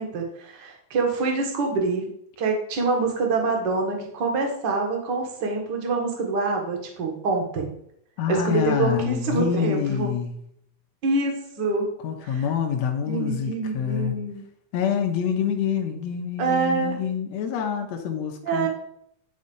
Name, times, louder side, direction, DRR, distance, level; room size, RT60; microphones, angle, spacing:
voice 1, 0.0-2.1 2.4-7.7 8.3-10.1 11.0-11.9 12.2-12.5 13.1-14.4 16.4-17.0 18.4-18.7, right 3 dB, 45° right, 1 dB, 1.4 m, -25 dB
voice 2, 8.2-10.3 12.0-14.2 14.7-18.7, left 7 dB, 70° left, 1 dB, 1.7 m, -26 dB
11.5 x 4.0 x 5.5 m, 0.73 s
omnidirectional pair, 4.3 m